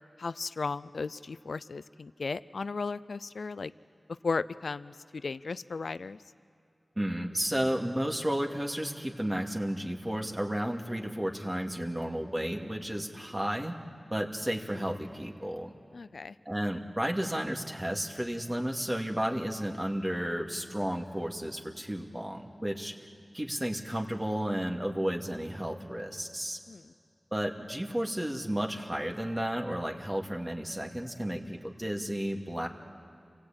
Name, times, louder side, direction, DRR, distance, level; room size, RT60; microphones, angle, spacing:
voice 1, 0.2-3.7 4.2-6.2 15.9-16.4 26.7-26.9, left 4 dB, 85° left, 16 dB, 0.5 m, -35 dB
voice 2, 7.0-13.8 14.1-15.7 16.5-22.9 23.3-26.6 27.3-32.7, equal, 20° right, 1 dB, 2.5 m, -32 dB
28.5 x 17.5 x 8.8 m, 2.5 s
cardioid pair, 40°, 0 cm